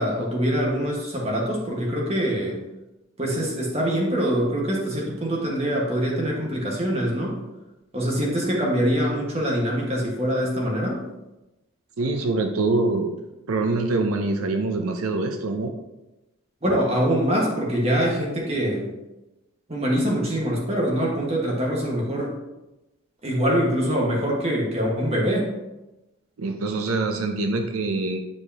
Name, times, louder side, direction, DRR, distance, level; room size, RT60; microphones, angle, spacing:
voice 1, 0.0-2.6 3.2-7.4 7.9-11.0 16.6-18.9 19.7-22.3 23.2-25.5, equal, 30° right, -2 dB, 1.6 m, -24 dB
voice 2, 12.0-13.1 13.5-15.7 26.4-28.2, right 3 dB, 85° right, 5 dB, 0.6 m, -24 dB
9.8 x 4.9 x 2.9 m, 1.0 s
head